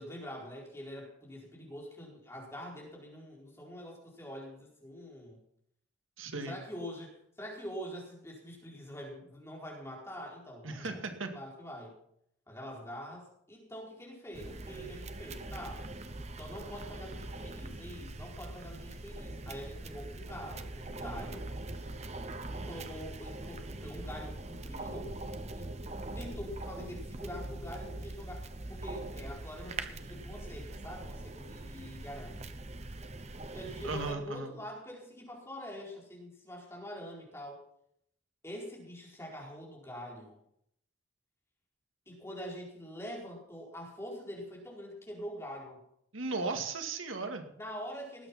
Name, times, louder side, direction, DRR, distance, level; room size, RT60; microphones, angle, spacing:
voice 1, 0.0-5.4 6.5-11.0 11.3-11.9 12.5-15.9 16.4-21.4 22.5-25.1 25.5-25.7 26.1-32.5 33.5-37.6 38.4-40.4 42.1-45.8 47.5-48.3, equal, 15° left, -2 dB, 4.5 m, -45 dB
voice 2, 6.2-6.6 10.6-11.3 33.8-34.5 46.1-47.5, right 3 dB, 90° right, 5 dB, 2.1 m, -36 dB
sound 1, 14.3-34.1, right 2 dB, 35° right, 1.0 m, -42 dB
19.5 x 8.7 x 5.8 m, 0.71 s
head